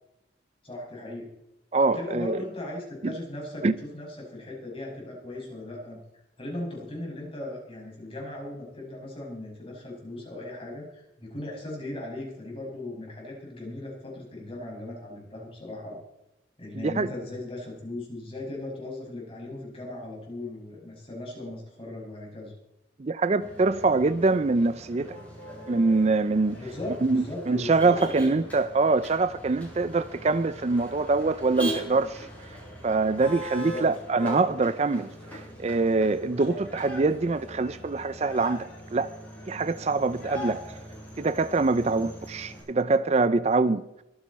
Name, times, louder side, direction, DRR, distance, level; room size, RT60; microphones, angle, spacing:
voice 1, 0.6-1.3 1.9-6.0 6.4-16.0 16.6-22.5 26.5-28.3 33.5-33.8 36.5-36.6 41.7-42.0, left 1 dB, 30° left, 6.1 m, -38 dB
voice 2, 1.7-2.4 3.0-3.1 3.6-3.7 16.7-17.1 23.0-25.2 25.7-26.6 27.0-32.6 32.8-39.1 39.5-40.8 41.2-43.8, right 3 dB, 35° right, 0.4 m, -24 dB
Motor vehicle (road), 23.4-42.6, equal, 10° left, 7.1 m, -40 dB
23.5 x 9.6 x 4.2 m
head